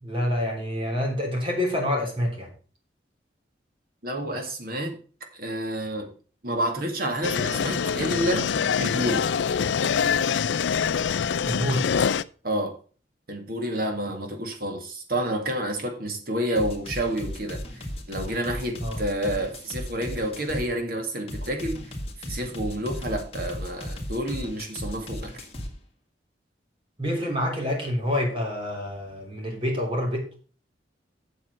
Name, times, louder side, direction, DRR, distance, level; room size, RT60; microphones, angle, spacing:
voice 1, 0.0-2.5 11.4-11.8 18.8-19.0 27.0-30.2, left 1 dB, 30° right, 0 dB, 3.4 m, -27 dB
voice 2, 4.0-5.0 5.3-6.1 6.4-8.5 8.8-9.2 12.4-12.8 13.3-21.8 22.2-25.5, right 1 dB, 55° right, 4 dB, 2.2 m, -29 dB
sound 1, 7.2-12.2, left 7 dB, 80° left, 0.4 m, -25 dB
sound 2, 16.5-20.7 21.3-25.7, equal, 35° left, 2.0 m, -35 dB
7.9 x 7.1 x 5.6 m, 0.39 s
head